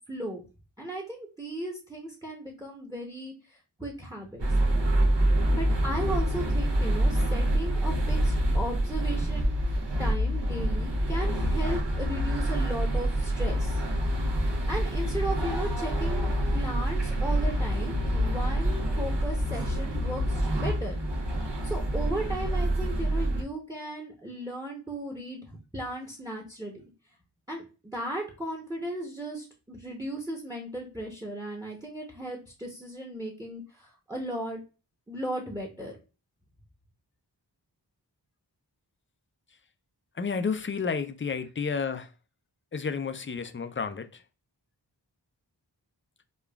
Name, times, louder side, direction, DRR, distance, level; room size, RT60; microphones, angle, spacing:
voice 1, 0.1-0.4 0.8-4.5 5.6-14.2 14.7-21.0 21.6-26.7 27.5-34.6 35.1-36.0, right 1 dB, 10° right, 0.8 m, -36 dB
sound 1, 4.4-20.4, left 2 dB, 60° left, 0.9 m, -31 dB
sound 2, 4.4-23.4, right 1 dB, 80° right, 0.9 m, -28 dB
voice 2, 40.2-42.1 42.7-44.1, left 5 dB, 30° left, 0.4 m, -31 dB
5.0 x 2.3 x 2.3 m
wide cardioid pair, 45°, 42 cm